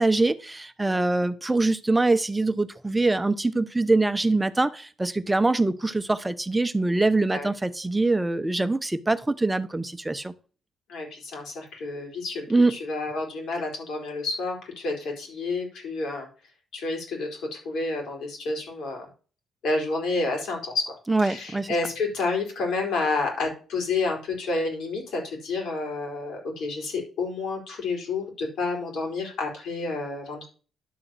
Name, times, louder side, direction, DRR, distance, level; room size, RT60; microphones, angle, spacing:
voice 1, 0.0-10.3 12.5-12.7 21.1-21.7, right 2 dB, 15° right, 0.8 m, -23 dB
voice 2, 10.9-16.3 16.7-19.1 19.6-20.9 21.2-30.5, left 3 dB, 75° left, 4.2 m, -30 dB
11.0 x 3.8 x 7.6 m
cardioid pair, 90°, 0 cm